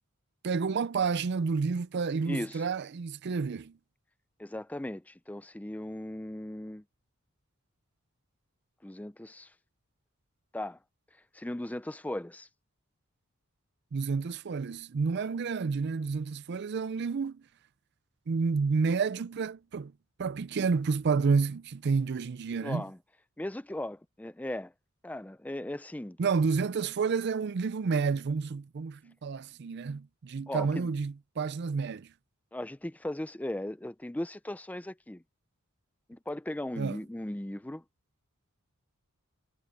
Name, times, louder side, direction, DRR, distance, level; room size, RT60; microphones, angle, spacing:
voice 1, 0.4-3.8 13.9-17.4 18.3-19.9 20.2-22.8 26.2-32.1 36.8-37.0, right 5 dB, 50° right, 0.4 m, -30 dB
voice 2, 2.3-2.6 4.4-6.8 8.8-9.5 10.5-10.8 11.3-12.5 22.6-23.0 23.4-24.7 25.0-26.2 30.5-30.9 32.5-35.2 36.1-37.8, left 1 dB, 5° left, 0.4 m, -37 dB
head